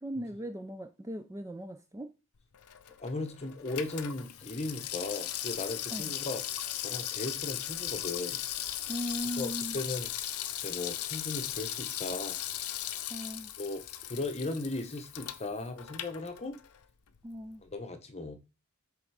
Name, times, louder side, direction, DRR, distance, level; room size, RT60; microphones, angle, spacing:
voice 1, 0.0-2.1 5.9-6.1 8.9-9.8 13.1-13.5 17.2-17.6, equal, 15° right, 0.3 m, -38 dB
Water tap faucet / Sink (filling or washing), 2.5-16.8 17.1-17.2, left 12 dB, 90° left, 0.7 m, -38 dB
voice 2, 3.0-6.4 6.8-8.4 9.4-10.1 10.6-12.4 13.6-16.6 17.6-18.4, left 2 dB, 30° left, 0.9 m, -37 dB
7.6 x 3.6 x 4.7 m
head